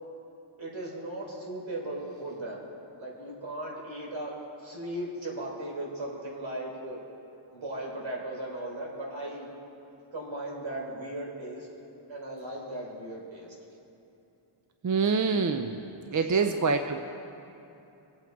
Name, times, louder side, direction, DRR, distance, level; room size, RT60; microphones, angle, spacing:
voice 1, 0.6-2.7 3.0-4.3 4.6-7.0 7.5-9.5 10.1-11.7 12.1-13.5 16.1-16.8, right 1 dB, 65° right, -2 dB, 3.8 m, -37 dB
voice 2, 14.8-15.8 16.1-17.0, right 5 dB, 40° right, 7 dB, 0.6 m, -25 dB
24.5 x 8.5 x 4.6 m, 2.9 s
wide cardioid pair, 130°, 49 cm